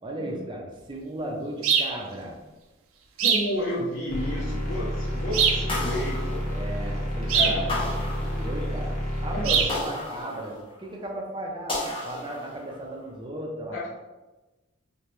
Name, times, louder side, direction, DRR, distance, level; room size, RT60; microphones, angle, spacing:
voice 1, 0.0-2.4 5.5-5.8 6.5-8.9 9.2-13.9, right 1 dB, 25° right, -2 dB, 0.6 m, -36 dB
sound 1, 1.6-2.0 3.2-3.5 5.3-5.7 7.3-7.6 9.4-9.8, right 6 dB, 90° right, 0.5 m, -22 dB
voice 2, 3.2-6.5 7.3-8.1 9.3-9.8 13.7-13.9, left 1 dB, 70° left, -8 dB, 0.8 m, -31 dB
sound 2, 4.1-9.7, equal, 45° left, 1.1 m, -30 dB
sound 3, 5.7-7.0 7.7-8.9 9.7-10.9 11.7-12.9, left 2 dB, 25° left, 0.7 m, -34 dB
3.2 x 2.9 x 3.1 m, 1.1 s
head